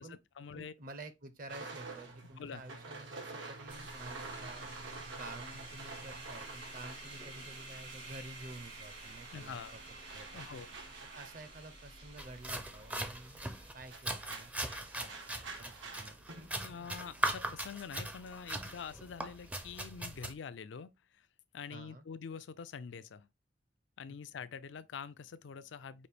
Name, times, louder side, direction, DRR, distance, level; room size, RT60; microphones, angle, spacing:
voice 1, 0.0-0.7 2.4-2.6 9.3-9.7 10.3-10.7 16.6-20.9 21.5-23.3 24.0-26.1, left 6 dB, 70° left, 0.4 m, -45 dB
voice 2, 0.5-9.8 10.1-10.6 11.1-13.4 13.7-14.5 14.8-16.2 21.7-22.0, right 2 dB, 50° right, 0.7 m, -50 dB
sound 1, 1.5-8.2 8.5-20.1, right 3 dB, 90° right, 1.2 m, -49 dB
sound 2, 3.7-13.9, right 2 dB, 65° right, 1.6 m, -50 dB
sound 3, 12.2-20.3, right 1 dB, 10° right, 0.4 m, -40 dB
5.2 x 2.5 x 3.3 m
head